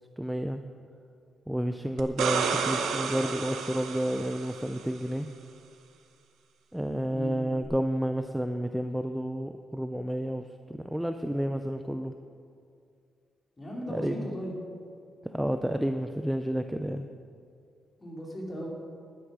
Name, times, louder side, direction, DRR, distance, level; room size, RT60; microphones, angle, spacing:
voice 1, 0.2-0.6 1.5-5.3 6.7-12.1 13.9-14.3 15.3-17.1, equal, 5° right, 7 dB, 0.4 m, -30 dB
sound 1, 2.0-4.8 7.6-7.7, right 6 dB, 90° right, 1.0 m, -31 dB
voice 2, 13.6-14.5 18.0-18.7, equal, 20° left, -2 dB, 2.8 m, -37 dB
11.0 x 9.9 x 6.1 m, 2.4 s
cardioid pair, 140°, 0 cm